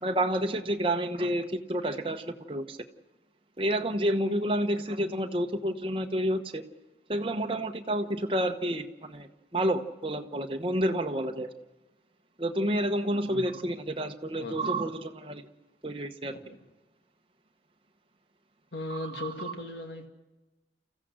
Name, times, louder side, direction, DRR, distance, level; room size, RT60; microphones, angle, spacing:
voice 1, 0.0-2.8 3.6-6.6 7.1-9.3 9.5-11.5 12.4-15.5 15.8-16.3 18.9-19.3, right 1 dB, 30° right, 5 dB, 1.0 m, -29 dB
voice 2, 13.3-13.7 14.4-14.8 16.3-16.6 18.7-20.1, left 2 dB, 70° left, 4 dB, 2.2 m, -39 dB
29.5 x 15.0 x 6.4 m, 1.1 s
head